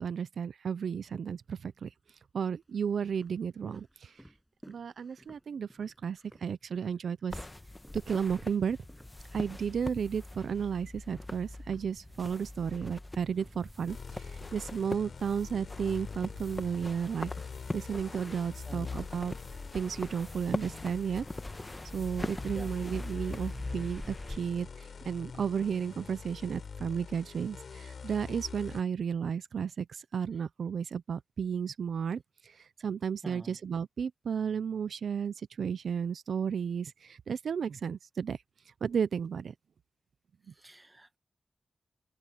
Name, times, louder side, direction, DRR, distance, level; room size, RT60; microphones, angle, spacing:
voice 1, 0.0-1.9 2.3-4.1 4.7-7.4 8.1-8.8 9.3-17.3 17.7-19.4 19.7-21.2 21.9-32.5 32.8-38.4 38.8-39.5, right 7 dB, 85° right, 0.4 m, -33 dB
sound 1, 1.0-1.8 2.4-7.6 7.8-14.1 14.4-18.1, equal, 5° right, 7.9 m, -57 dB
sound 2, 7.3-24.4, left 2 dB, 20° left, 1.2 m, -42 dB
sound 3, 13.9-28.8, left 5 dB, 75° left, 3.4 m, -45 dB
voice 2, 18.6-19.0 22.5-22.7 33.2-33.6 40.5-41.2, right 2 dB, 20° right, 1.7 m, -48 dB
open air
wide cardioid pair, 75°, 0 cm